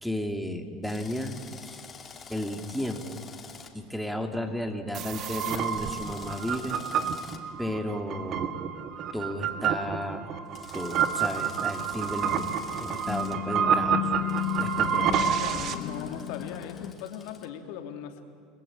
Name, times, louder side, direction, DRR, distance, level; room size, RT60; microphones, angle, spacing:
voice 1, 0.0-1.8 2.3-3.2 3.7-6.8 7.6-8.6 9.1-10.3 10.7-14.3 14.5-15.4, left 1 dB, ahead, 5 dB, 2.8 m, -33 dB
Drill, 0.8-3.7 5.1-7.4 10.5-13.3 14.3-17.4, left 5 dB, 25° left, 3.0 m, -48 dB
sound 1, 4.9-15.8, right 8 dB, 45° right, 1.9 m, -29 dB
sound 2, 11.9-16.9, left 12 dB, 50° left, 2.3 m, -35 dB
voice 2, 15.0-18.2, left 9 dB, 70° left, 5 dB, 2.8 m, -39 dB
30.0 x 20.0 x 9.0 m, 2.4 s
supercardioid pair, 110°, 0 cm